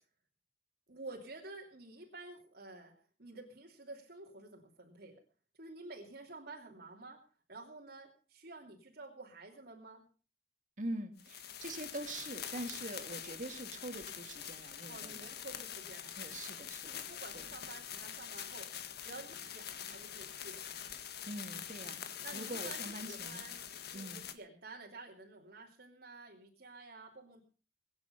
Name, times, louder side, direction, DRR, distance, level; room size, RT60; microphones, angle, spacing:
voice 1, 0.9-2.9 3.2-5.2 5.6-7.2 7.5-10.0 14.9-16.3 16.8-18.7 19.0-20.6 22.2-23.6 23.9-27.4, right 2 dB, 65° right, -2 dB, 2.9 m, -51 dB
voice 2, 10.8-15.3 16.2-17.1 17.3-17.5 21.3-22.1 22.3-23.4 23.9-24.3, right 1 dB, 45° right, 7 dB, 2.4 m, -44 dB
sound 1, 11.2-24.3, left 9 dB, 65° left, 1.7 m, -45 dB
23.0 x 9.7 x 5.3 m, 0.38 s
head